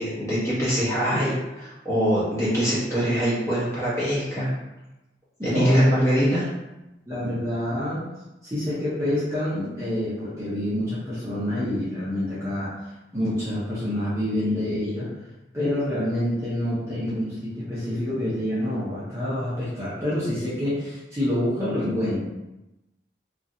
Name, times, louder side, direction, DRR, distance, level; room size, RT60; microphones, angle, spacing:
voice 1, 0.0-4.5 5.4-6.5, equal, 15° left, -10 dB, 1.1 m, -23 dB
voice 2, 5.4-6.3 7.1-8.0 8.4-15.1 15.5-22.2, left 1 dB, 15° right, -10 dB, 0.7 m, -27 dB
3.0 x 2.4 x 2.6 m, 0.98 s
head